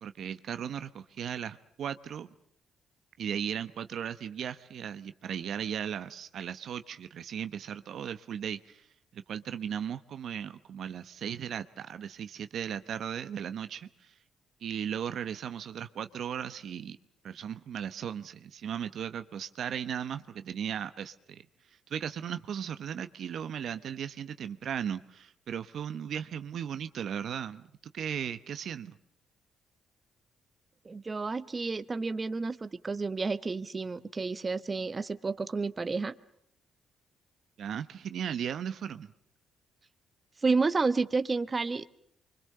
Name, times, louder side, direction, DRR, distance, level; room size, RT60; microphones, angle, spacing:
voice 1, 0.0-2.3 3.2-8.9 9.1-14.1 14.6-17.0 17.2-21.4 21.9-28.9 37.6-39.1, right 8 dB, 65° right, 11 dB, 1.0 m, -36 dB
voice 2, 30.8-36.1 40.4-41.8, right 4 dB, 30° right, 12 dB, 1.1 m, -30 dB
25.5 x 24.5 x 6.7 m, 0.67 s
cardioid pair, 90°, 0 cm